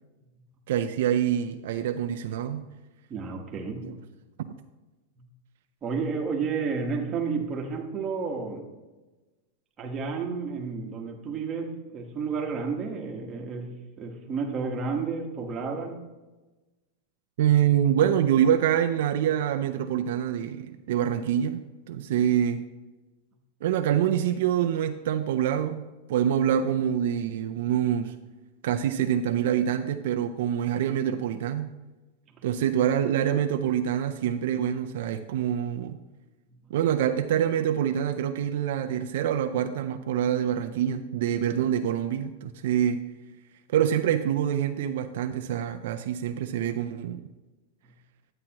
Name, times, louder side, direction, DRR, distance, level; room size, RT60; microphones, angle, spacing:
voice 1, 0.7-2.7 3.8-3.9 4.4-4.5 17.4-21.6 21.9-22.6 23.6-28.1 28.6-31.7 32.4-36.0 36.7-43.0 43.7-47.2, right 9 dB, 65° right, 7 dB, 0.5 m, -25 dB
voice 2, 3.1-3.9 5.8-8.6 9.8-16.0 32.3-32.4, right 5 dB, 20° right, 0 dB, 1.3 m, -31 dB
10.5 x 8.7 x 2.9 m, 1.1 s
supercardioid pair, 160°, 0 cm